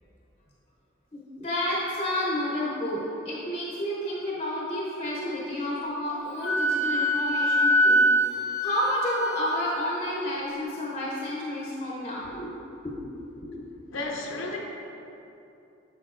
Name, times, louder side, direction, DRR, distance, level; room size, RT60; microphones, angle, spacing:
voice 1, 1.1-12.5 12.8-13.2 13.4-13.6 14.5-14.6, left 1 dB, 30° left, -5 dB, 0.7 m, -30 dB
Wind instrument woodwind instrument, 6.4-9.9, equal, 5° right, 1.0 m, -24 dB
voice 2, 13.9-14.6, left 2 dB, 80° left, 1 dB, 0.6 m, -32 dB
7.0 x 6.1 x 2.5 m, 2.8 s
head